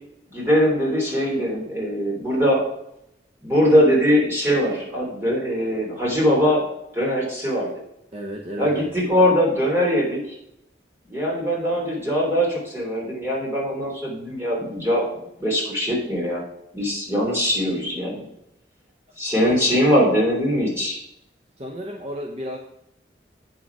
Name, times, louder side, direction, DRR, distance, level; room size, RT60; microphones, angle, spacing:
voice 1, 0.3-2.6 3.4-6.6 6.9-7.7 8.6-10.4 11.1-15.0 15.4-16.4 16.7-18.3 19.2-21.0, equal, 15° right, -4 dB, 3.2 m, -21 dB
voice 2, 8.1-8.9 19.4-19.6 21.6-22.6, equal, 35° right, 2 dB, 0.8 m, -32 dB
8.5 x 6.5 x 4.7 m, 0.79 s
head